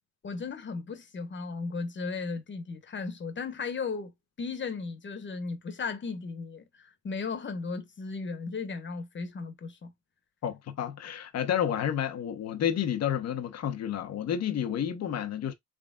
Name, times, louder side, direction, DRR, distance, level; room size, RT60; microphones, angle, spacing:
voice 1, 0.2-4.1 4.4-9.9, left 4 dB, 40° left, 1.2 m, -36 dB
voice 2, 10.4-15.5, left 9 dB, 60° left, 0.9 m, -30 dB
3.7 x 3.3 x 2.3 m
cardioid pair, 90°, 30 cm